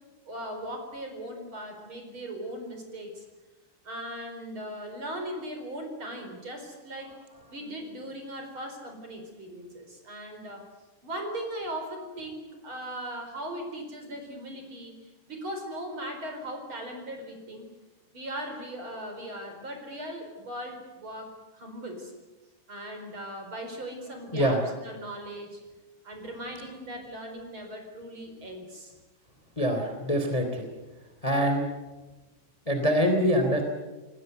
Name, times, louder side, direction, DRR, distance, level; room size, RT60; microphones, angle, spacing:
voice 1, 0.2-3.2 3.8-7.1 7.5-10.7 11.0-17.7 18.1-22.1 22.7-25.6 26.0-28.9, right 1 dB, 25° right, 5 dB, 4.8 m, -39 dB
voice 2, 24.3-24.7 29.6-30.7 31.2-31.7 32.6-33.6, equal, 10° left, 5 dB, 1.8 m, -24 dB
27.5 x 19.5 x 8.1 m, 1.2 s
omnidirectional pair, 5.4 m